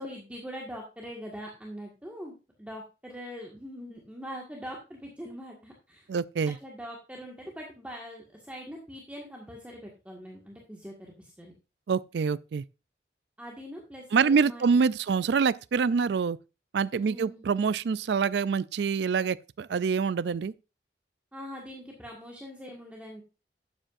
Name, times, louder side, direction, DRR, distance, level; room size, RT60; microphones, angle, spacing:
voice 1, 0.0-6.1 6.6-11.5 13.4-14.8 17.0-17.4 21.3-23.2, equal, 10° right, 1.7 m, -42 dB
voice 2, 6.1-6.6 11.9-12.6 14.1-16.4 16.7-20.5, right 5 dB, 70° right, 0.4 m, -26 dB
12.0 x 8.9 x 2.6 m
head